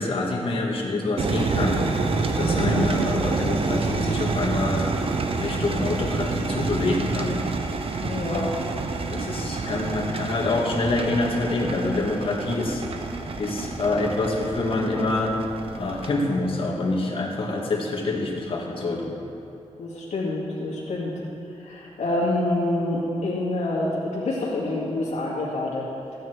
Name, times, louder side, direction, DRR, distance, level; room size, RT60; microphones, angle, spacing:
voice 1, 0.0-1.8 2.4-4.9 5.4-7.3 8.3-8.5 9.1-12.8 13.4-15.3 15.7-19.1, left 2 dB, 50° left, -2 dB, 2.1 m, -26 dB
sound 1, 1.2-16.1, right 4 dB, 50° right, 0.9 m, -28 dB
voice 2, 2.6-3.0 8.0-8.4 19.8-21.1 21.6-25.8, left 2 dB, 80° left, -6 dB, 2.3 m, -27 dB
15.0 x 9.1 x 4.6 m, 2.8 s
wide cardioid pair, 130°, 12 cm